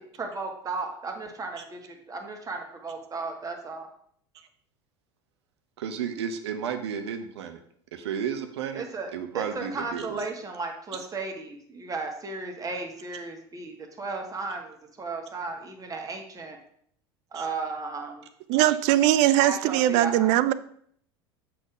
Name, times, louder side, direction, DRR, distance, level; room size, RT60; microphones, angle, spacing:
voice 1, 0.2-3.9 8.7-9.1 9.3-16.6 17.3-18.3 19.2-20.3, right 3 dB, 25° right, 3 dB, 1.7 m, -35 dB
voice 2, 5.8-7.6 7.9-8.8 9.1-10.2 17.3-17.4 18.5-18.8, right 7 dB, 80° right, 8 dB, 0.9 m, -33 dB
voice 3, 18.5-20.5, right 14 dB, 60° right, 15 dB, 0.5 m, -21 dB
7.5 x 4.3 x 5.0 m, 0.65 s
hypercardioid pair, 85°, 14 cm